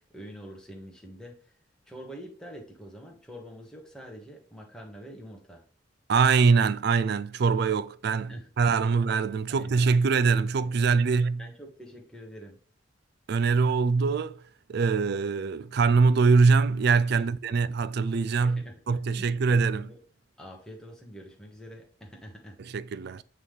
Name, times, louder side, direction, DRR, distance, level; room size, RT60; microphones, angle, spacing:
voice 1, 0.0-1.5 1.9-5.6 8.3-8.5 9.5-9.8 10.6-12.6 17.1-17.6 18.4-18.8 19.1-20.0 20.4-22.6, equal, 5° left, 1.4 m, -46 dB
voice 2, 6.1-11.4 13.3-14.4 14.7-19.9 22.6-23.2, right 4 dB, 55° right, 0.4 m, -23 dB
8.5 x 3.7 x 3.2 m
head